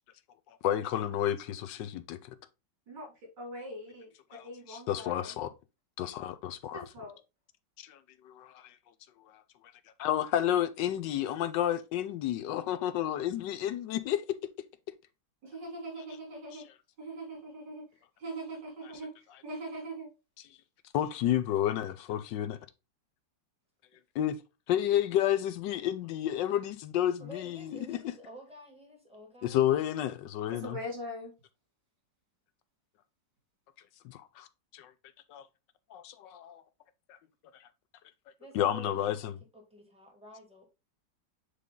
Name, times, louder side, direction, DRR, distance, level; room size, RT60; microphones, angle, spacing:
voice 1, 0.6-2.4 4.7-5.5 6.0-6.8 7.8-8.0 8.2-8.7 10.0-14.2 20.9-22.6 24.1-24.3 24.7-28.0 29.4-30.8 34.0-34.5 34.7-34.9 35.3-35.4 35.9-36.6 38.5-39.3, left 11 dB, 85° left, 1.4 m, -30 dB
voice 2, 2.9-5.4 6.7-7.2 15.4-16.6 17.0-17.9 18.2-19.1 19.4-20.1 30.5-31.3, right 1 dB, 75° right, 3.7 m, -41 dB
voice 3, 27.2-29.6 38.4-39.0 39.5-40.7, equal, 5° right, 2.2 m, -50 dB
8.4 x 3.4 x 3.7 m
omnidirectional pair, 1.9 m